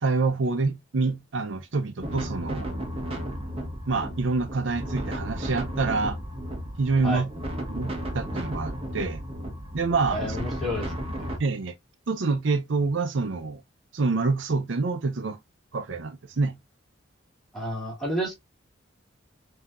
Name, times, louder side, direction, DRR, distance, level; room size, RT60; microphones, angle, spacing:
voice 1, 0.0-2.7 3.9-6.2 6.8-7.3 7.7-9.2 9.7-10.4 11.4-11.7 12.1-13.6 13.9-15.4 15.7-16.6, right 3 dB, 70° right, 0.6 m, -27 dB
sound 1, 2.0-11.4, equal, 30° right, 1.0 m, -34 dB
voice 2, 10.1-10.9 17.5-18.3, equal, ahead, 2.3 m, -30 dB
5.9 x 2.8 x 2.4 m
head